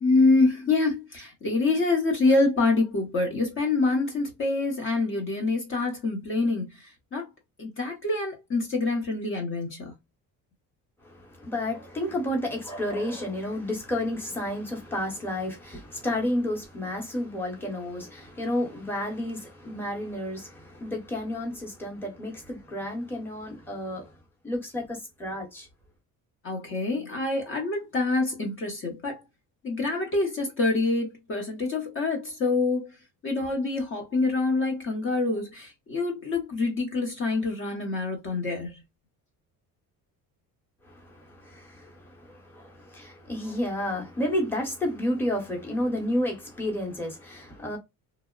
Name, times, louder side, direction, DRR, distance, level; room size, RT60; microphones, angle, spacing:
voice 1, 0.0-6.6 7.1-7.2 7.6-9.9 26.4-29.2 29.6-32.9 33.2-38.7, left 3 dB, 35° left, 0.8 m, -26 dB
voice 2, 11.5-20.5 20.8-24.0 24.4-25.7 42.9-47.8, left 1 dB, 5° left, 0.9 m, -30 dB
2.9 x 2.0 x 2.2 m
cardioid pair, 160°, 35 cm